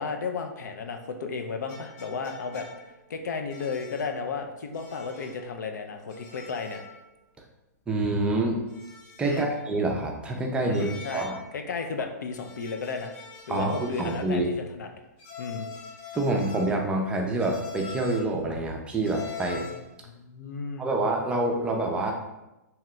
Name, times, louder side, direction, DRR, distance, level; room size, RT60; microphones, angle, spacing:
voice 1, 0.0-6.8 9.2-9.5 10.7-11.3 11.5-13.1 13.5-14.9 15.4-15.7 19.5-19.7 20.0-20.9, left 4 dB, 80° left, 5 dB, 0.4 m, -34 dB
sound 1, 1.7-3.0 3.5-4.2 4.7-5.4 6.1-7.0 7.3-7.4 8.7-9.6 10.7-11.6 12.3-14.4 15.2-16.8 17.4-18.3 19.0-19.9, left 6 dB, 35° left, 0.7 m, -44 dB
voice 2, 7.9-8.6 9.2-11.4 13.5-14.5 16.1-19.6 20.8-22.1, right 2 dB, 10° right, 1 dB, 0.4 m, -27 dB
2.8 x 2.3 x 3.1 m, 0.97 s
hypercardioid pair, 140°, 10 cm